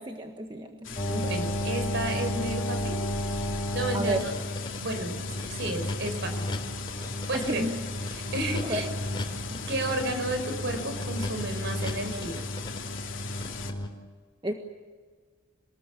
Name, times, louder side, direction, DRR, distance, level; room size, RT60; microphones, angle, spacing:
voice 1, 0.0-1.3 3.9-4.3 7.3-7.8 8.6-8.8 14.4-14.5, right 1 dB, 20° right, 3 dB, 1.5 m, -32 dB
sound 1, 0.8-13.7, left 5 dB, 60° left, 3.1 m, -39 dB
sound 2, 1.0-13.9, equal, 25° left, 3.7 m, -33 dB
voice 2, 1.1-3.1 3.7-4.3 4.8-6.5 7.3-7.7 8.1-8.9 9.5-12.4, right 1 dB, 55° right, 6 dB, 5.4 m, -32 dB
27.5 x 20.0 x 8.5 m, 1.5 s
head